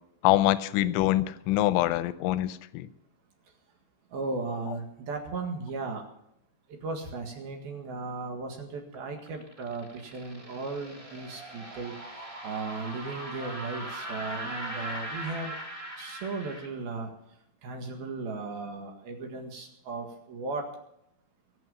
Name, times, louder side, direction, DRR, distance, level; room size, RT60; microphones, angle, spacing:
voice 1, 0.2-2.9, left 15 dB, 80° left, 14 dB, 2.9 m, -25 dB
voice 2, 4.1-6.0 6.7-11.9 12.4-15.6 16.0-17.1 17.6-20.6, right 3 dB, 60° right, 2 dB, 3.2 m, -36 dB
sound 1, 8.9-16.7, right 1 dB, 20° right, 0.8 m, -40 dB
22.5 x 7.7 x 7.0 m, 0.78 s
omnidirectional pair, 5.8 m